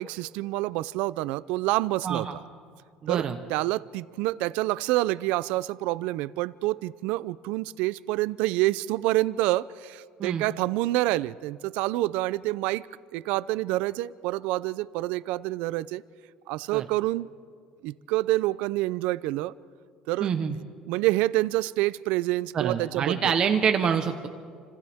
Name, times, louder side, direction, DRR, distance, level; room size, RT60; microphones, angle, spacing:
voice 1, 0.0-2.3 3.1-12.9 13.1-16.0 16.5-17.3 17.8-19.5 20.1-20.3 20.9-23.3, right 18 dB, 80° right, 18 dB, 0.5 m, -27 dB
voice 2, 2.0-2.4 3.0-3.4 10.2-10.4 16.7-16.8 20.2-20.6 22.5-24.3, right 7 dB, 35° right, 6 dB, 1.0 m, -26 dB
29.5 x 26.0 x 3.6 m, 2.1 s
cardioid pair, 160°, 2 cm